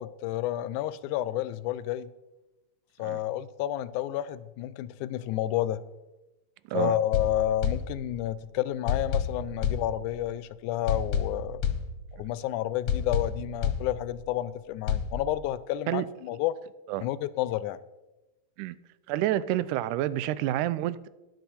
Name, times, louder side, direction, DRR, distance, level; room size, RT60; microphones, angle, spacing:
voice 1, 0.0-2.1 3.0-5.8 6.7-11.6 12.1-16.6 17.0-17.8, left 13 dB, 85° left, 2.0 m, -30 dB
sound 1, 7.1-8.4 8.9-10.4 10.9-12.4 12.9-14.4 14.9-15.1, left 7 dB, 60° left, 1.7 m, -31 dB
voice 2, 19.1-21.1, right 13 dB, 85° right, 2.0 m, -28 dB
12.5 x 10.5 x 4.3 m
omnidirectional pair, 3.5 m